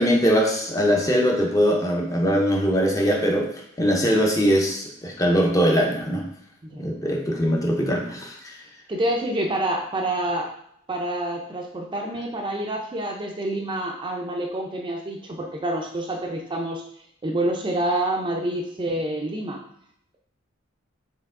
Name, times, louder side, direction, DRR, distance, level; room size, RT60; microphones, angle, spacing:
voice 1, 0.0-3.5 3.8-6.2 6.8-8.6, equal, 15° left, 0 dB, 0.7 m, -21 dB
voice 2, 8.9-10.5 10.9-16.8 17.2-19.6, right 1 dB, 25° right, 1 dB, 0.5 m, -27 dB
4.6 x 2.9 x 3.6 m, 0.71 s
head